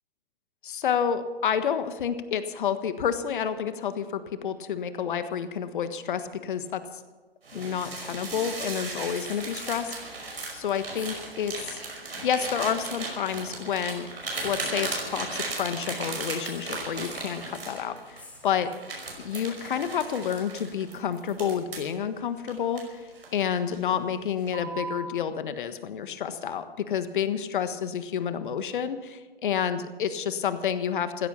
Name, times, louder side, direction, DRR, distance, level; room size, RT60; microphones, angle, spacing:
voice 1, 0.6-7.0 7.5-10.0 10.5-11.8 12.2-14.1 14.4-18.7 19.2-23.0 23.3-31.3, left 8 dB, 55° left, 11 dB, 1.5 m, -29 dB
sound 1, 6.6-6.8 7.5-8.6 8.9-9.7 10.0-10.2 10.9-11.8 12.8-12.9 14.3-15.4 16.4-17.4 18.2-19.1 20.8-20.9, left 2 dB, 5° left, 2.5 m, -49 dB
sound 2, 7.5-18.2 18.7-21.9 22.5-23.4 23.7-24.0 24.5-25.0, right 3 dB, 80° right, 5.4 m, -36 dB
16.0 x 13.5 x 5.9 m, 1.3 s
figure-of-eight pair, 130°, 30 cm